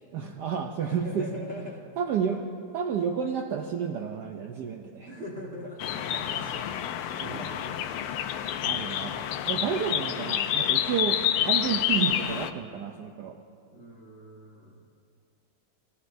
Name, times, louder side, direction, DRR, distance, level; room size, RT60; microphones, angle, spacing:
voice 1, 0.1-1.3 2.0-2.5 2.7-5.1 7.2-7.5 8.6-13.4, right 7 dB, 70° right, 4 dB, 1.0 m, -31 dB
voice 2, 0.8-1.8 5.1-8.2 13.7-14.7, equal, 30° right, -2 dB, 1.4 m, -42 dB
sound 1, 5.8-12.5, left 10 dB, 80° left, 1.5 m, -28 dB
25.5 x 14.5 x 2.7 m, 2.4 s
omnidirectional pair, 2.4 m